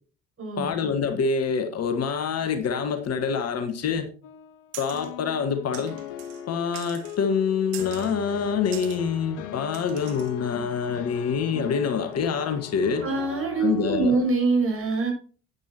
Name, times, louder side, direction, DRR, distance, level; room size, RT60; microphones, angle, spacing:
voice 1, 0.6-4.1 4.8-5.9 6.5-13.0 13.6-14.2, left 6 dB, 40° left, 1.5 m, -26 dB
sound 1, 4.2-14.3, left 10 dB, 60° left, 1.3 m, -39 dB
sound 2, 4.7-5.1 5.7-6.4 6.7-7.2 7.7-8.2 8.7-9.0 9.7-10.3, right 14 dB, 65° right, 1.3 m, -42 dB
voice 2, 13.0-15.1, right 3 dB, 35° right, 5.8 m, -24 dB
12.0 x 9.3 x 2.8 m
figure-of-eight pair, 60°, 38 cm